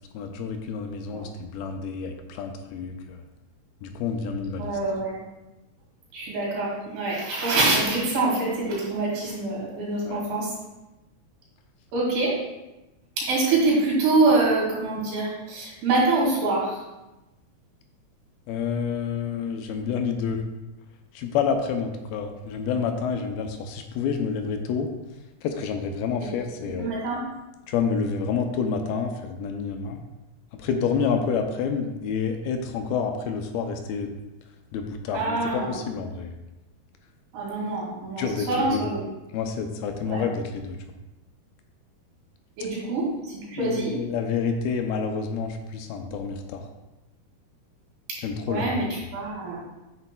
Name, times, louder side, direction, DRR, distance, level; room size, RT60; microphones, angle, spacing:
voice 1, 0.1-3.2 3.8-4.8 10.1-10.2 18.5-20.4 21.1-24.9 25.4-26.9 27.7-30.0 30.5-34.1 34.7-36.4 38.2-38.9 39.3-40.8 43.6-46.7 48.2-48.8, left 6 dB, 80° left, 5 dB, 2.2 m, -28 dB
voice 2, 4.6-5.2 6.1-10.5 11.9-12.3 13.2-16.8 26.2-26.3 26.8-27.2 35.1-35.8 37.3-39.0 40.1-40.2 42.6-43.9 48.5-49.6, right 2 dB, 80° right, -5 dB, 4.0 m, -25 dB
8.2 x 6.9 x 2.2 m, 1.0 s
omnidirectional pair, 4.5 m